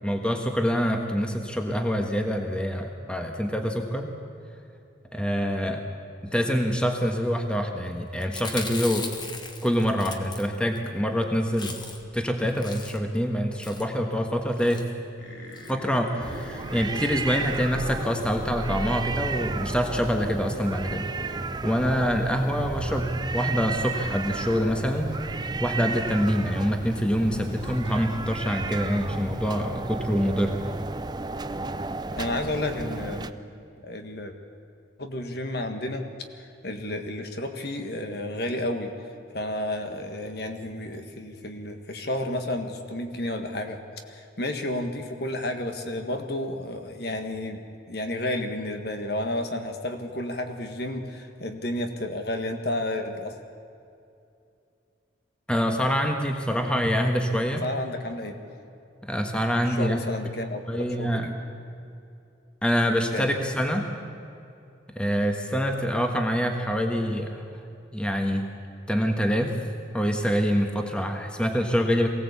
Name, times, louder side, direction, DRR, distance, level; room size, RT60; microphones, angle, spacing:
voice 1, 0.0-4.1 5.1-5.8 6.2-9.1 9.6-11.8 12.1-14.8 15.7-25.1 25.6-30.6 55.5-57.6 59.0-60.0 60.7-61.3 62.6-63.9 64.9-67.5 67.9-68.4 68.9-69.6 69.9-72.1, equal, 5° left, 3 dB, 1.4 m, -25 dB
Chewing mastication, 8.2-10.8 11.2-11.3 11.5-12.2 12.5-13.2 13.6-13.9 14.5-14.8 15.5-15.7 16.1-16.2 16.3-16.4, left 3 dB, 25° left, 1.4 m, -38 dB
sound 1, 15.2-21.7 22.2-22.7 23.4-26.2 26.7-26.8 27.0-27.1 27.5-28.1, left 1 dB, 75° left, 3.7 m, -43 dB
sound 2, 16.2-33.3, right 3 dB, 20° right, 0.5 m, -33 dB
voice 2, 32.1-33.4 33.8-34.3 35.0-36.1 36.3-38.9 39.3-43.8 44.1-53.4 57.6-58.4 59.7-61.3 63.1-63.3, left 1 dB, 55° left, 5 dB, 1.7 m, -31 dB
23.0 x 17.0 x 8.4 m, 2.6 s
head